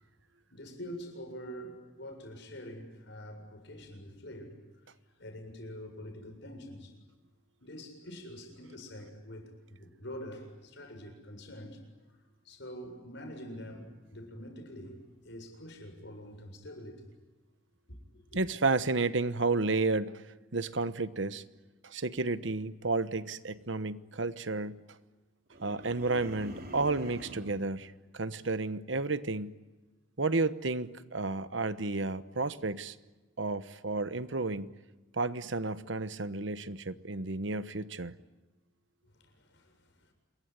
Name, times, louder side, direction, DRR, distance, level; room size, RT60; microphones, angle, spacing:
voice 1, 0.5-4.6 5.2-6.9 7.6-11.8 12.4-17.0 17.9-18.4 39.0-40.1, equal, 60° left, 7.5 m, -45 dB
voice 2, 18.3-20.2 20.5-21.4 21.8-25.0 25.6-29.6 30.2-33.0 33.4-34.7 35.1-38.1, right 3 dB, 70° right, 1.2 m, -32 dB
sound 1, 25.5-27.6, equal, 50° right, 3.8 m, -45 dB
28.0 x 22.5 x 9.5 m
head